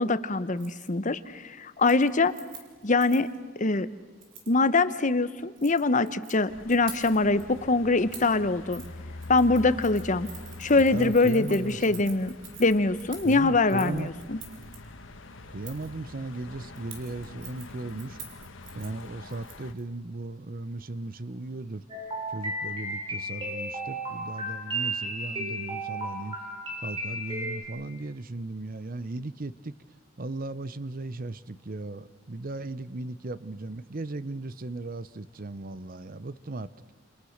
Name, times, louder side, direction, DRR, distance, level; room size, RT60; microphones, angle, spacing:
voice 1, 0.0-2.3 2.8-3.3 3.6-3.9 4.5-8.8 9.3-10.3 10.6-12.3 12.6-14.4, left 3 dB, 40° left, 13 dB, 0.9 m, -23 dB
Keys jangling, 0.6-0.9 1.2-1.5 1.8-3.4 4.2-4.5 5.4-6.3 6.7-7.4 8.1-8.4 8.7-8.9 9.2-14.8 15.6-15.9 16.8-19.8 20.1-20.2, right 6 dB, 70° right, 4.2 m, -47 dB
sound 1, 6.5-19.7, left 2 dB, 85° left, 1.6 m, -45 dB
voice 2, 10.8-12.0 13.2-14.1 15.5-18.2 18.7-21.8 22.3-26.4 26.8-29.8 30.2-36.9, right 2 dB, 50° right, 16 dB, 0.8 m, -37 dB
sound 2, 21.9-27.6, right 1 dB, 25° right, 4.4 m, -34 dB
29.0 x 28.0 x 6.6 m, 1.4 s
head